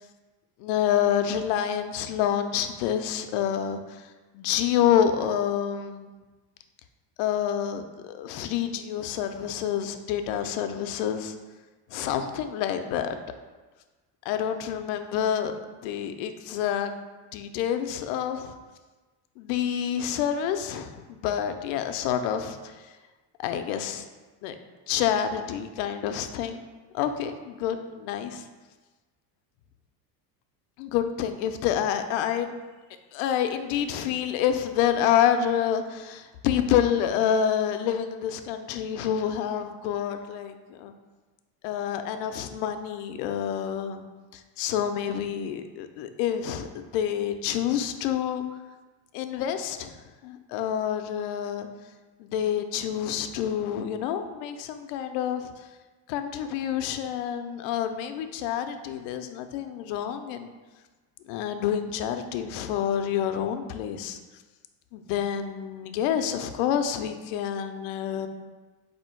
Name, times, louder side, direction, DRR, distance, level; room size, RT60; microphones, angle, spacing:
voice 1, 0.6-4.0 4.3-6.1 7.2-11.3 11.9-13.1 14.3-15.5 15.8-16.9 17.3-18.5 19.4-22.7 23.4-24.0 24.4-24.5 24.9-26.6 26.9-28.4 30.8-32.5 33.1-40.9 41.6-44.0 44.3-48.4 49.1-50.0 50.2-51.7 52.2-55.5 56.1-60.5 61.3-64.2 64.9-68.3, left 9 dB, 90° left, 8 dB, 0.5 m, -28 dB
4.3 x 2.7 x 4.4 m, 1.3 s
cardioid pair, 150°, 43 cm